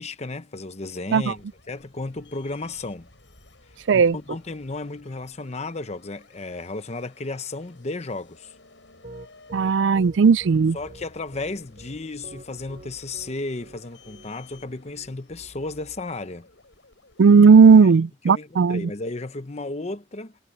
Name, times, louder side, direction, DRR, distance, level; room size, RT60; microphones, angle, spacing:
voice 1, 0.0-3.1 3.9-8.5 10.7-16.5 17.8-17.9 18.3-20.4, left 2 dB, 35° left, 0.9 m, -34 dB
sound 1, 1.1-17.3, left 2 dB, 80° left, 7.8 m, -54 dB
Piano, 9.0-15.5, right 1 dB, 45° right, 3.0 m, -45 dB
voice 2, 9.5-10.8 17.2-18.9, right 5 dB, 85° right, 0.4 m, -15 dB
head